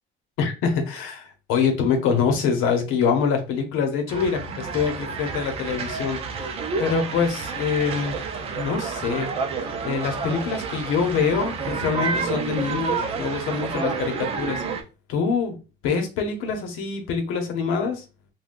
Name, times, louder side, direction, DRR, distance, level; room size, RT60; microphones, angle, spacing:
voice 1, 0.4-6.5 6.8-8.2 8.6-9.3 9.8-14.6 15.1-15.6 15.8-18.0, left 6 dB, 85° left, 5 dB, 0.8 m, -25 dB
sound 1, 4.1-14.8, right 5 dB, 30° right, 0.4 m, -29 dB
3.6 x 2.2 x 2.5 m, 0.30 s
cardioid pair, 170°, 21 cm